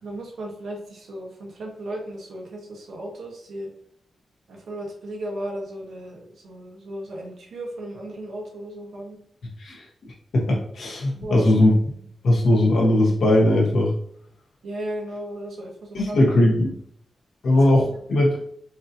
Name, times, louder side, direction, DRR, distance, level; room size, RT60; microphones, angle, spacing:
voice 1, 0.0-3.7 4.5-9.2 10.7-11.5 14.6-16.3 17.5-17.6 17.9-18.1, right 1 dB, 90° right, -1 dB, 1.2 m, -35 dB
voice 2, 10.3-11.7 12.2-13.9 15.9-16.7 17.4-18.4, left 1 dB, 70° left, -1 dB, 1.2 m, -19 dB
4.7 x 2.8 x 2.7 m, 0.67 s
wide cardioid pair, 155°, 0 cm